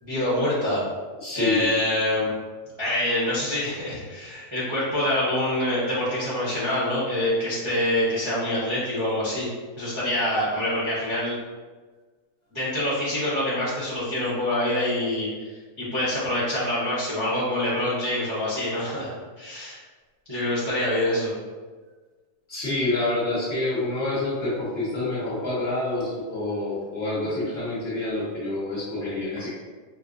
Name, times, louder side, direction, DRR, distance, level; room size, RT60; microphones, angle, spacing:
voice 1, 0.0-0.8 1.3-2.3 2.8-9.5 9.8-11.4 12.5-15.3 15.8-19.1 19.4-19.8 20.3-21.3, left 1 dB, 25° right, -11 dB, 0.7 m, -25 dB
voice 2, 1.2-1.7 22.5-29.5, left 2 dB, 45° left, -8 dB, 1.0 m, -27 dB
4.2 x 2.3 x 2.5 m, 1.4 s
omnidirectional pair, 1.6 m